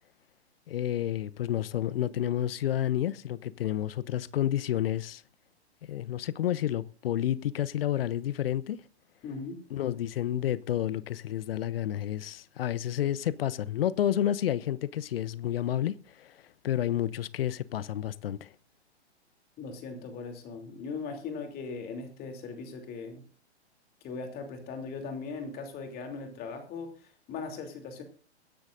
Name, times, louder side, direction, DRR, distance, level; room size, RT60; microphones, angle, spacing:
voice 1, 0.7-5.2 5.9-8.8 9.7-16.3 16.6-18.5, left 11 dB, 60° left, 0.7 m, -30 dB
voice 2, 9.2-9.6 19.6-23.2 24.0-28.0, left 4 dB, 25° left, 3.0 m, -39 dB
23.0 x 10.5 x 2.6 m
figure-of-eight pair, 115°, 34 cm